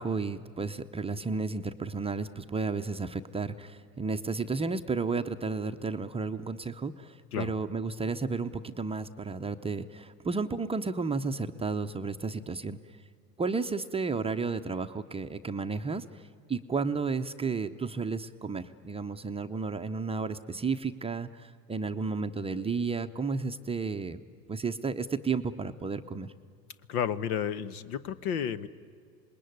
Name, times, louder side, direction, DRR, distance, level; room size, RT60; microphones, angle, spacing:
voice 1, 0.0-12.8 13.4-16.0 16.5-21.3 21.7-24.2 24.5-26.3, right 4 dB, 10° right, 7 dB, 0.7 m, -32 dB
voice 2, 26.9-28.7, left 8 dB, 65° left, 17 dB, 1.2 m, -31 dB
26.0 x 20.5 x 9.4 m, 2.2 s
hypercardioid pair, 90°, 47 cm